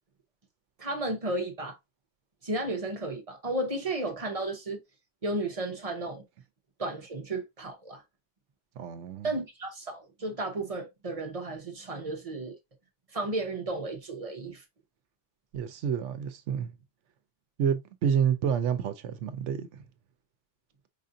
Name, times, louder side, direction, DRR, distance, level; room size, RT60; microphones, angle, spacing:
voice 1, 0.8-1.8 2.4-4.8 5.2-6.2 6.8-8.0 9.2-12.6 13.1-14.6, right 2 dB, 35° right, 0.8 m, -33 dB
voice 2, 8.8-9.3 15.5-16.7 17.6-19.8, right 7 dB, 80° right, 1.0 m, -29 dB
4.9 x 2.5 x 2.6 m
omnidirectional pair, 1.2 m